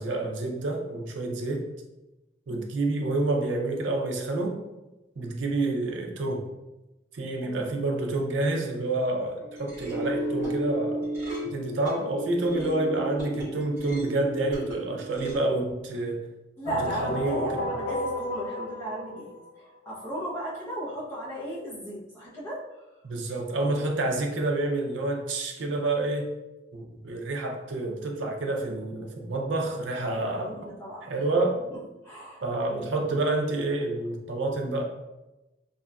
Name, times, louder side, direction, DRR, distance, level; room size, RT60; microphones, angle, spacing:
voice 1, 0.0-1.6 2.5-4.6 5.2-6.5 7.1-11.1 11.4-16.2 17.0-17.7 23.0-26.3 26.7-30.6 31.0-31.6 32.4-34.8, right 2 dB, 65° right, 2 dB, 0.4 m, -28 dB
sound 1, 9.4-15.3, right 2 dB, 15° right, 1.0 m, -33 dB
voice 2, 16.6-22.9 30.1-31.2 31.7-31.8 32.0-32.4 32.7-32.8, right 1 dB, 15° left, -8 dB, 0.7 m, -36 dB
sound 2, 16.7-19.5, left 1 dB, 40° left, 0.3 m, -32 dB
2.9 x 2.4 x 2.2 m, 1.0 s
head